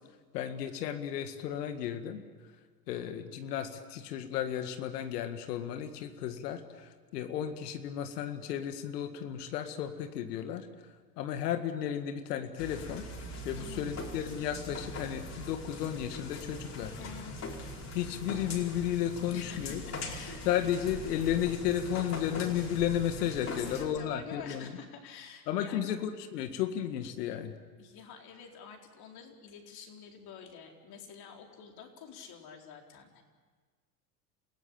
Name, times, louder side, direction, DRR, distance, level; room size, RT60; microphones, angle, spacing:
voice 1, 0.3-2.2 2.9-10.7 11.2-13.1 13.4-16.9 17.9-19.8 20.5-24.7 25.5-27.5, left 10 dB, 75° left, 8 dB, 1.9 m, -33 dB
sound 1, 12.6-23.8, left 2 dB, 35° left, 5.0 m, -41 dB
voice 2, 13.5-13.9 17.0-17.4 19.3-20.4 23.5-26.0 27.8-33.2, left 6 dB, 50° left, 2 dB, 4.3 m, -48 dB
28.5 x 16.0 x 8.8 m, 1.5 s
hypercardioid pair, 90°, 48 cm